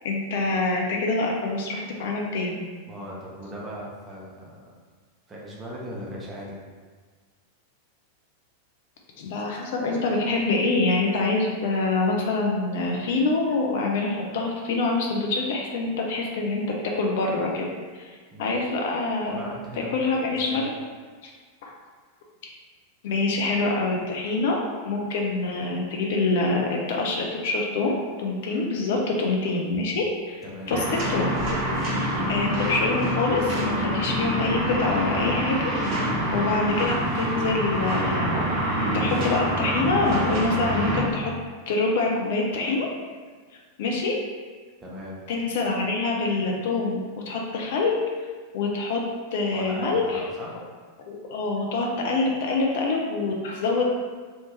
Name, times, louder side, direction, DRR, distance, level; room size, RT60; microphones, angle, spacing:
voice 1, 0.0-2.6 9.2-16.6 16.9-17.7 17.9-19.5 19.9-20.6 21.6-21.7 23.0-24.6 24.8-27.9 28.2-31.3 31.8-35.6 35.9-38.4 38.9-41.3 41.7-42.9 43.8-44.2 45.3-48.0 48.5-49.0 49.3-50.2 51.1-53.8, left 3 dB, 55° left, 0 dB, 0.5 m, -25 dB
voice 2, 2.9-4.8 5.3-6.6 18.3-18.5 19.3-20.6 30.4-30.8 44.8-45.2 49.5-50.6, equal, 20° right, -4 dB, 0.8 m, -38 dB
sound 1, 30.7-41.0, equal, 35° right, 1.1 m, -26 dB
3.2 x 2.7 x 3.1 m, 1.5 s
figure-of-eight pair, 90°, 0 cm